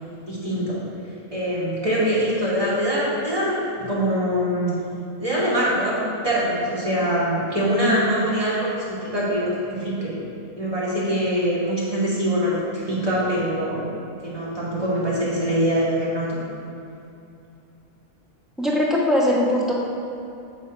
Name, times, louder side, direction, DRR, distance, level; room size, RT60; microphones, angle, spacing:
voice 1, 0.3-0.8 1.3-4.7 5.2-10.1 10.6-13.9 14.2-16.4, equal, 25° right, -8 dB, 2.4 m, -23 dB
voice 2, 18.6-19.7, left 1 dB, ahead, -4 dB, 1.2 m, -20 dB
7.3 x 7.0 x 4.9 m, 2.7 s
omnidirectional pair, 1.4 m